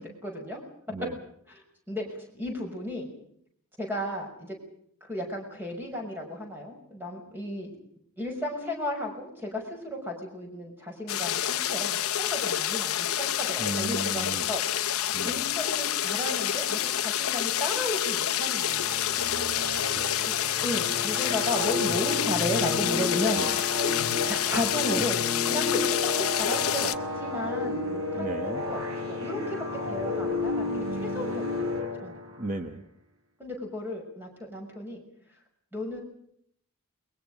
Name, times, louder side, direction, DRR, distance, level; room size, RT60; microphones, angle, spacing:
voice 1, 0.2-0.6 1.9-3.1 3.8-4.6 5.0-7.7 8.2-14.6 15.2-18.9 20.2-20.4 20.6-23.4 24.2-25.2 25.5-25.8 26.2-26.9 27.2-28.8 29.1-29.6 29.9-32.2 33.4-35.0 35.7-36.0, left 1 dB, 10° right, 1 dB, 6.2 m, -34 dB
sound 1, 11.1-26.9, left 11 dB, 75° left, 0.8 m, -28 dB
voice 2, 13.6-14.5 15.1-15.5 19.0-20.1 20.4-20.5 23.4-23.5 28.1-28.7 32.4-32.8, right 2 dB, 35° right, 7 dB, 1.4 m, -36 dB
sound 2, 18.4-32.5, left 3 dB, 70° right, 4.5 m, -32 dB
29.0 x 22.5 x 5.1 m, 0.66 s
head